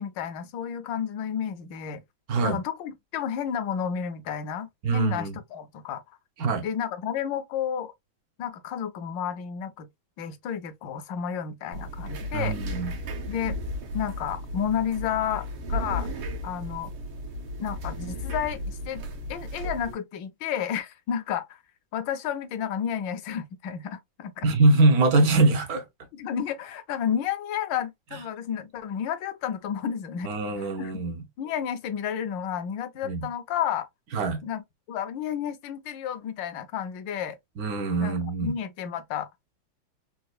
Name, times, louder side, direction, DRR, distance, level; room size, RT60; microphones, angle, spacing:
voice 1, 0.0-2.0 2.4-6.0 6.6-7.9 8.4-9.9 10.2-12.5 13.3-13.6 13.9-16.1 16.4-16.9 17.6-19.0 19.3-21.5 21.9-24.5 26.1-31.0 31.4-33.9 34.4-34.6 34.9-37.4 38.0-39.3, left 8 dB, 75° left, 1.2 m, -31 dB
voice 2, 2.3-2.6 4.8-5.3 6.4-6.7 12.3-12.9 24.4-25.8 30.2-31.2 33.0-33.3 34.1-34.4 37.6-38.5, right 3 dB, 65° right, 0.9 m, -23 dB
sound 1, 11.7-19.9, equal, 85° right, 1.7 m, -34 dB
4.2 x 2.2 x 2.3 m
omnidirectional pair, 2.2 m